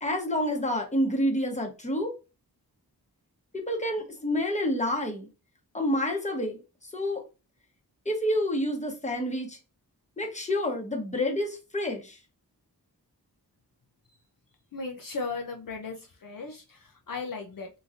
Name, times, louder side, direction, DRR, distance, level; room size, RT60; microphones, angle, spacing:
voice 1, 0.0-2.1 3.5-5.3 5.7-6.6 6.9-7.2 8.1-9.6 10.2-12.2, left 1 dB, 15° left, 0.9 m, -28 dB
voice 2, 14.7-17.7, left 4 dB, 55° left, 0.6 m, -36 dB
2.9 x 2.7 x 2.5 m
cardioid pair, 40°, 40 cm